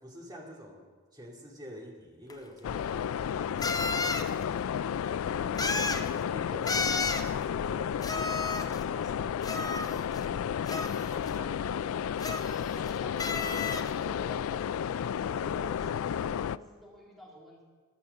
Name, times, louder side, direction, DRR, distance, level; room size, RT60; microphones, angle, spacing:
voice 1, 0.0-4.7 5.8-12.1 12.4-13.4, equal, 20° right, -1 dB, 2.5 m, -49 dB
sound 1, 2.3-2.4 3.6-4.3 5.6-6.1 6.7-7.3 8.0-8.8 9.4-10.2 10.7-11.3 12.2-12.9 13.2-13.9, left 3 dB, 15° left, 0.6 m, -32 dB
sound 2, 2.6-16.6, left 8 dB, 70° left, 0.3 m, -32 dB
voice 2, 12.7-17.6, left 1 dB, ahead, -5 dB, 2.3 m, -49 dB
14.0 x 11.0 x 6.8 m, 1.5 s
head